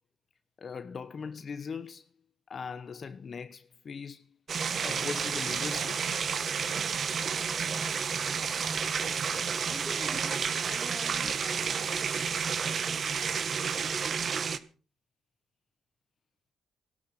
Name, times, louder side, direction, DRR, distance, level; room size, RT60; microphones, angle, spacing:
voice 1, 0.6-2.1 2.5-4.3 4.8-6.0, left 5 dB, 45° left, 1.0 m, -40 dB
sound 1, 4.5-14.6, right 6 dB, 50° right, 1.5 m, -31 dB
voice 2, 9.5-12.4, right 1 dB, 5° right, 4.7 m, -46 dB
16.5 x 13.0 x 6.0 m
cardioid pair, 90°, 0 cm